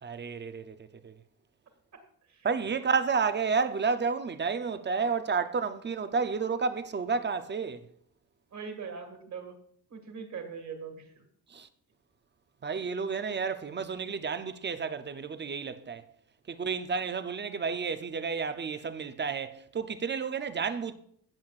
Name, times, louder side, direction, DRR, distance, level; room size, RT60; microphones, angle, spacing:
voice 1, 0.0-1.1 2.4-7.8 11.5-11.7 12.6-16.0 16.5-20.9, right 5 dB, 30° right, 0.5 m, -31 dB
voice 2, 8.5-9.6 9.9-11.2, right 6 dB, 45° right, 2.0 m, -41 dB
16.0 x 7.7 x 2.4 m
wide cardioid pair, 165°, 40 cm